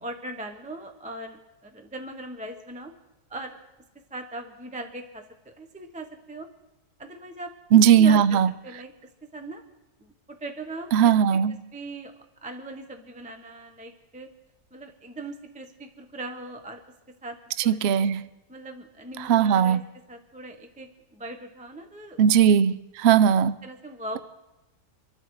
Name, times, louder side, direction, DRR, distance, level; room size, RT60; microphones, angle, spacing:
voice 1, 0.0-2.9 3.3-3.6 4.1-6.5 7.0-7.5 8.0-8.2 8.6-8.9 9.3-9.6 10.0-11.1 11.7-12.1 12.4-14.3 14.7-16.8 17.2-17.4 17.6-18.1 18.5-19.8 20.1-22.2 23.6-24.2, right 2 dB, 5° right, 5 dB, 0.7 m, -39 dB
voice 2, 7.7-8.5 10.9-11.6 17.7-18.2 19.2-19.8 22.2-23.6, right 8 dB, 80° right, 14 dB, 0.5 m, -18 dB
26.0 x 13.0 x 3.2 m, 1.0 s
omnidirectional pair, 1.8 m